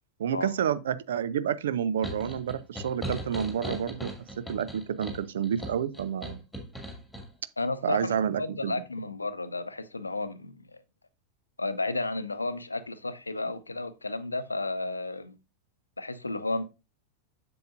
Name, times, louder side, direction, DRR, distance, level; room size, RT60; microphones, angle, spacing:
voice 1, 0.2-6.4 7.8-8.7, right 8 dB, 60° right, 0.5 m, -29 dB
sound 1, 2.0-7.3, equal, ahead, 2.2 m, -38 dB
voice 2, 7.6-10.7 11.6-15.3 16.0-16.6, left 2 dB, 80° left, 0.7 m, -32 dB
7.8 x 7.0 x 2.5 m
figure-of-eight pair, 90°, 0 cm